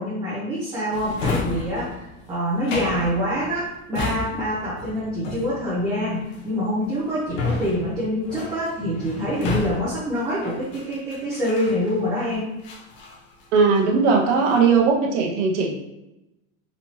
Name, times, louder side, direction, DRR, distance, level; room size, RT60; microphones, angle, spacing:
voice 1, 0.0-12.4, equal, 10° right, -10 dB, 0.7 m, -26 dB
Drawer open or close, 0.9-12.2 12.6-13.9 14.2-14.8, left 3 dB, 60° left, 1.1 m, -32 dB
voice 2, 13.5-15.7, right 5 dB, 55° right, 1 dB, 0.9 m, -18 dB
4.2 x 2.9 x 2.9 m, 0.93 s
supercardioid pair, 165°, 43 cm